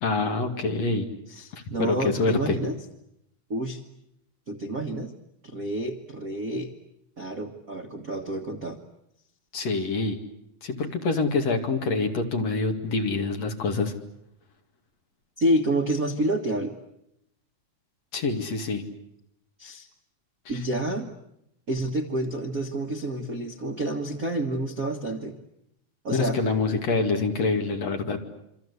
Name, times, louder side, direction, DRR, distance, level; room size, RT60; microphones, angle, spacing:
voice 1, 0.0-1.1 1.5-2.6 9.5-10.2 10.6-13.9 18.1-18.8 26.1-28.2, left 3 dB, 50° left, 4 dB, 3.1 m, -26 dB
voice 2, 1.3-2.8 3.5-3.8 4.5-5.1 5.4-6.7 7.2-8.8 15.4-16.7 19.6-19.9 20.5-21.1 21.7-25.4 26.0-26.4, right 1 dB, 45° right, 4 dB, 1.0 m, -28 dB
27.5 x 25.0 x 8.3 m, 0.80 s
omnidirectional pair, 4.2 m